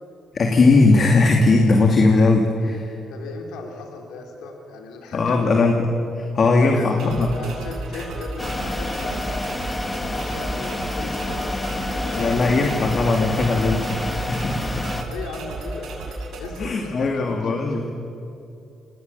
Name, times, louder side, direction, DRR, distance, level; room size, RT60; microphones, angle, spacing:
voice 1, 0.3-2.9 5.1-5.8 6.2-7.3 7.9-8.1 12.1-14.7 16.6-17.9, left 3 dB, 45° left, 2 dB, 2.4 m, -19 dB
voice 2, 3.1-5.5 6.4-9.5 10.1-12.7 15.1-15.9 16.4-17.9, left 4 dB, 85° left, 2 dB, 3.4 m, -37 dB
sound 1, 7.0-16.6, right 2 dB, 75° right, 6.1 m, -33 dB
sound 2, 8.4-15.0, left 2 dB, 15° left, 1.7 m, -29 dB
26.0 x 18.5 x 7.0 m, 2.7 s
cardioid pair, 90°, 0 cm